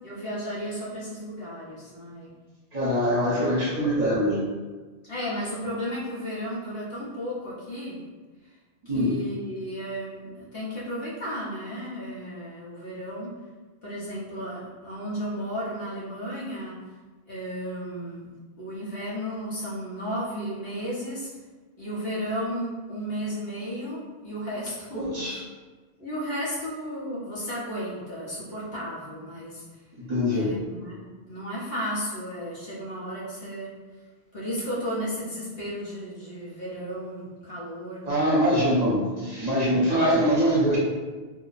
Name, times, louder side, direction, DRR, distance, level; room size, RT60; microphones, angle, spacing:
voice 1, 0.0-2.3 3.0-3.5 5.0-8.0 8.4-8.5 8.8-13.3 13.8-16.8 17.3-18.3 18.6-21.3 21.8-25.4 26.0-29.6 30.3-33.7 34.3-38.1 39.6-39.9, equal, 65° left, -8 dB, 1.4 m, -34 dB
voice 2, 2.7-4.4 8.9-9.2 24.9-25.4 30.0-30.6 38.1-40.8, equal, 40° right, -7 dB, 1.0 m, -23 dB
2.9 x 2.2 x 4.0 m, 1.3 s
omnidirectional pair, 1.1 m